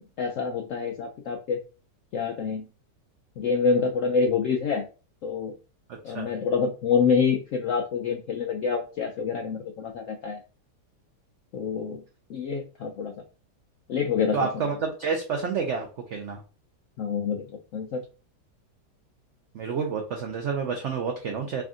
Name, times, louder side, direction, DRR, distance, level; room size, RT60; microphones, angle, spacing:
voice 1, 0.2-1.6 2.1-2.7 3.4-4.9 5.2-5.6 6.0-10.4 11.5-12.0 12.3-13.1 13.9-14.5 17.0-18.0, left 5 dB, 80° left, 2 dB, 0.7 m, -27 dB
voice 2, 14.3-16.4 19.5-21.6, right 5 dB, 90° right, 3 dB, 0.6 m, -29 dB
3.4 x 2.5 x 3.6 m, 0.34 s
omnidirectional pair, 1.9 m